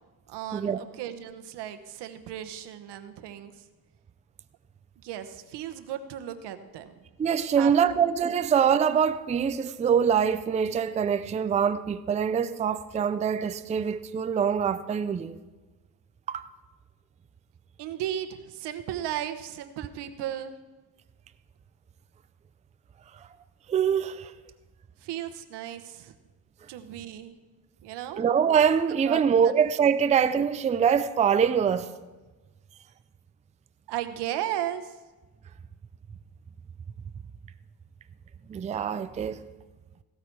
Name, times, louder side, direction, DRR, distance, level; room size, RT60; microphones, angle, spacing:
voice 1, 0.3-3.5 5.0-6.9 7.6-8.0 8.2-8.4 17.8-20.5 25.0-26.1 26.7-27.3 27.8-28.2 29.0-29.2 33.9-34.9, right 11 dB, 90° right, 1.1 m, -35 dB
voice 2, 7.2-15.3 16.3-16.5 23.7-24.3 28.2-31.9 38.5-39.4, right 7 dB, 20° right, 0.4 m, -24 dB
16.5 x 13.0 x 4.7 m
cardioid pair, 140°, 40 cm